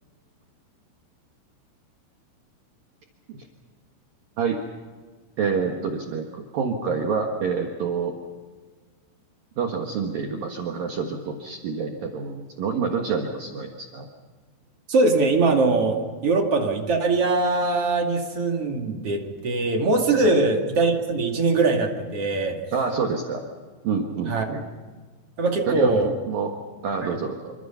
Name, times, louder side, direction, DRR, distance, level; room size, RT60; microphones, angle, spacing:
voice 1, 5.4-8.1 9.6-14.1 20.2-20.4 22.7-23.4 23.8-24.6 25.7-26.0 26.3-26.5 26.8-27.5, right 5 dB, 60° right, 2 dB, 2.7 m, -27 dB
voice 2, 14.9-16.0 16.2-22.6 24.3-24.5 25.4-26.1 27.1-27.2, right 3 dB, 40° right, 2 dB, 2.4 m, -22 dB
27.5 x 26.0 x 5.8 m, 1.5 s
omnidirectional pair, 5.7 m